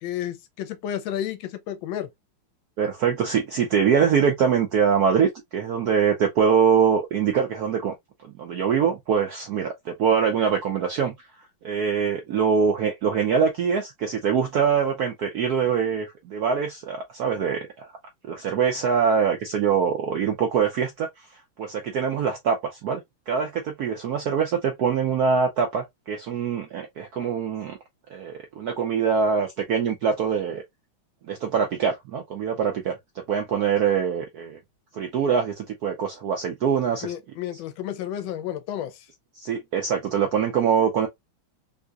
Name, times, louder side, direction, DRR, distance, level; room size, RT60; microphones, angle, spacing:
voice 1, 0.0-2.1 37.0-39.1, left 11 dB, 80° left, 1.3 m, -31 dB
voice 2, 2.8-7.9 8.4-11.1 11.6-17.9 18.3-21.1 21.6-27.8 28.1-30.6 31.3-32.9 33.3-34.6 34.9-37.1 39.4-41.1, right 6 dB, 75° right, 0.9 m, -23 dB
3.6 x 2.7 x 2.4 m
omnidirectional pair, 2.3 m